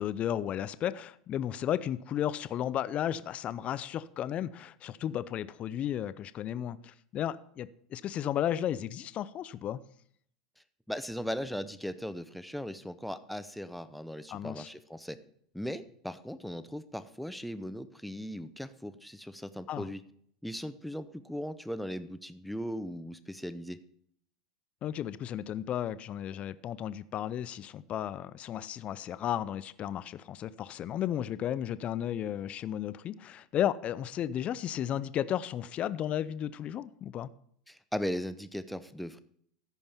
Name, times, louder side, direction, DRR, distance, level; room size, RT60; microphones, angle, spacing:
voice 1, 0.0-9.8 14.3-14.7 19.7-19.9 24.8-37.3, left 10 dB, 40° left, 0.5 m, -34 dB
voice 2, 10.9-15.2 15.5-20.0 20.4-23.8 37.7-39.2, equal, ahead, 0.7 m, -38 dB
14.0 x 5.4 x 5.6 m
hypercardioid pair, 100°, 3 cm